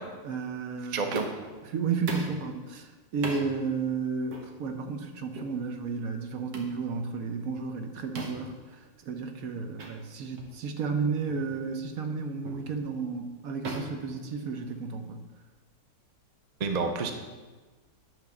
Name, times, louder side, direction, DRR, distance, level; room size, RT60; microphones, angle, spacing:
voice 1, 0.2-1.1 1.7-8.5 9.0-15.2, right 5 dB, 70° right, 5 dB, 1.2 m, -32 dB
voice 2, 0.9-1.3 16.6-17.1, right 4 dB, 40° right, 5 dB, 0.7 m, -29 dB
sound 1, 1.1-1.5 2.1-2.4 3.2-3.5 4.3-4.5 5.3-5.5 6.5-6.8 8.2-8.5 9.8-9.9 10.4-10.5 11.3-11.5 12.4-12.7 13.6-14.9, right 3 dB, 85° right, 1.7 m, -38 dB
10.5 x 3.8 x 7.0 m, 1.3 s
omnidirectional pair, 1.6 m